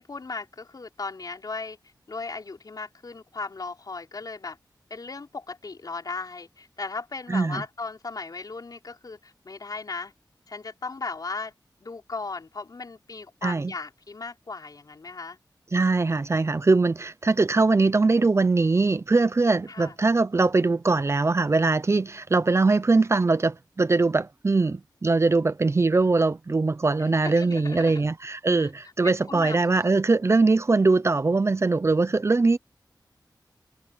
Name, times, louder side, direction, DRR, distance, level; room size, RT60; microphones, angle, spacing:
voice 1, 0.0-1.8 2.1-4.6 4.9-10.1 10.5-11.5 11.8-15.4 19.7-19.9 27.0-28.1 28.6-28.7 29.0-29.8, left 4 dB, 55° left, 4.6 m, -37 dB
voice 2, 7.3-7.6 13.4-13.7 15.7-32.6, right 3 dB, 35° right, 0.7 m, -22 dB
wide cardioid pair, 95°, 8 cm